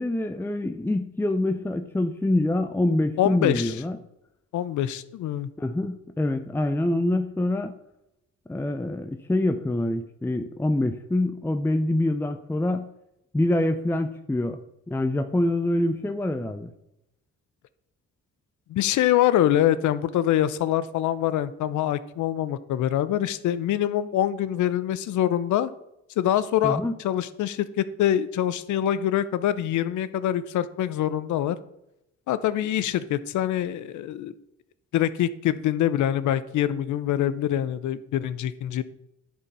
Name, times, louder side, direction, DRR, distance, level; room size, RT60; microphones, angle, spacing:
voice 1, 0.0-4.0 5.6-7.7 8.5-12.9 13.3-14.6 14.9-16.7 26.6-26.9, left 1 dB, 10° left, 8 dB, 0.5 m, -25 dB
voice 2, 3.2-3.8 4.5-5.5 18.7-25.7 26.2-31.6 32.3-34.3 34.9-38.8, left 11 dB, 75° left, 15 dB, 0.7 m, -24 dB
10.0 x 4.7 x 5.5 m, 0.85 s
cardioid pair, 90°, 30 cm